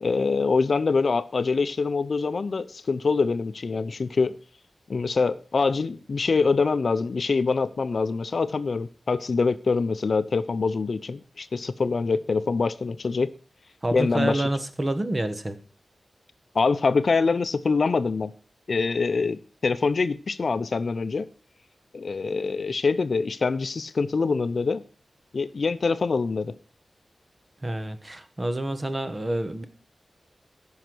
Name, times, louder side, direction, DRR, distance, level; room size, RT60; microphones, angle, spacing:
voice 1, 0.0-4.4 4.9-13.3 13.9-14.5 16.5-18.3 18.7-21.3 21.9-24.8 25.3-26.5, left 4 dB, 65° left, 0.6 m, -24 dB
voice 2, 13.8-15.6 27.6-29.7, right 1 dB, 25° right, 1.2 m, -28 dB
14.5 x 5.7 x 6.1 m
wide cardioid pair, 85°, 0 cm